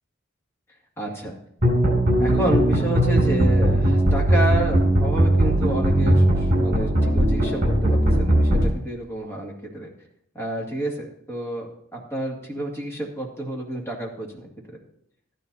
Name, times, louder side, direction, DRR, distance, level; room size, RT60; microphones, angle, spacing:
voice 1, 1.0-1.4 2.2-9.9 10.3-14.5, right 1 dB, 10° left, -2 dB, 2.1 m, -30 dB
sound 1, 1.6-8.6, right 1 dB, 35° right, 4.7 m, -19 dB
14.0 x 10.5 x 2.7 m, 0.71 s
head